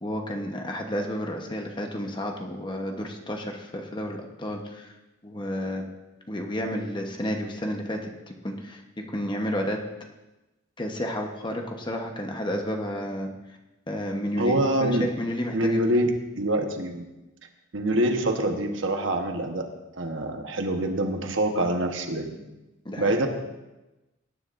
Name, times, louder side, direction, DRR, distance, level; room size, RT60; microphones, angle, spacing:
voice 1, 0.0-4.9 5.2-5.8 6.3-9.8 10.8-13.3 13.9-15.8 22.8-23.2, equal, 25° left, 2 dB, 1.1 m, -31 dB
voice 2, 14.4-15.1 15.5-17.0 17.7-19.7 20.0-22.4 23.0-23.3, right 1 dB, 70° right, 4 dB, 1.2 m, -25 dB
18.5 x 9.9 x 2.6 m, 1.0 s
head